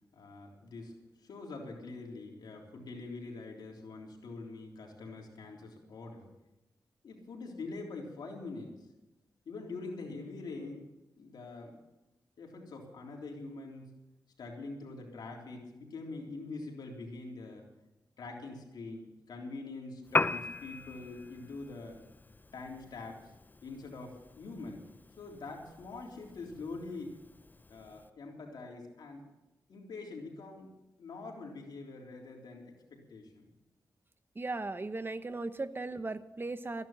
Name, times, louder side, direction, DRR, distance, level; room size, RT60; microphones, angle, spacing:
voice 1, 0.1-6.3 7.0-8.7 9.5-10.9 11.2-11.8 12.4-13.9 14.4-17.7 18.2-22.0 22.5-23.3 23.6-24.8 25.2-27.2 27.7-29.2 29.7-30.7 31.0-33.5, left 3 dB, 85° left, -1 dB, 3.6 m, -44 dB
Piano, 20.0-28.1, left 3 dB, 25° left, 0.5 m, -39 dB
voice 2, 34.4-36.9, right 3 dB, 30° right, 11 dB, 1.0 m, -37 dB
15.0 x 11.0 x 7.4 m, 0.97 s
cardioid pair, 70°, 7 cm